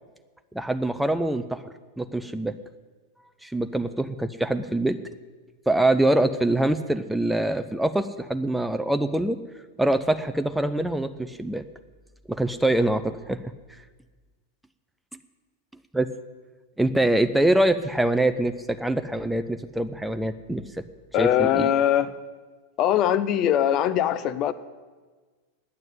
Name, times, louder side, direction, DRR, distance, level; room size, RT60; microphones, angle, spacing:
voice 1, 0.5-1.6 2.0-2.5 3.4-5.0 5.7-9.4 9.8-11.6 12.3-13.4 15.9-16.1 16.8-20.8 21.2-21.7, right 1 dB, 5° right, 9 dB, 0.5 m, -24 dB
voice 2, 21.1-22.1 22.8-24.5, left 10 dB, 35° left, 14 dB, 0.7 m, -21 dB
9.5 x 9.1 x 9.2 m, 1.4 s
figure-of-eight pair, 90°, 0 cm